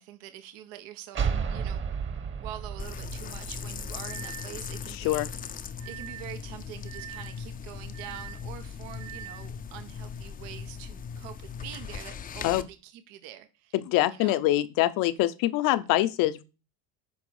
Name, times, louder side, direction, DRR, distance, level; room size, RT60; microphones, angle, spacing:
voice 1, 0.0-1.8 2.4-5.3 5.6-13.7 14.0-14.4, right 12 dB, 75° right, 1.2 m, -45 dB
sound 1, 1.1-4.7, right 6 dB, 35° right, 1.3 m, -33 dB
sound 2, 2.5-2.6 4.0-4.6 5.8-6.3 6.9-7.4 7.9-8.4 9.0-9.5, right 12 dB, 55° right, 1.2 m, -43 dB
sound 3, 2.8-12.6, left 6 dB, 25° left, 0.6 m, -39 dB
voice 2, 5.0-5.3 12.4-12.6 13.7-16.4, left 15 dB, 65° left, 0.8 m, -24 dB
9.4 x 5.4 x 4.8 m
cardioid pair, 135°, 36 cm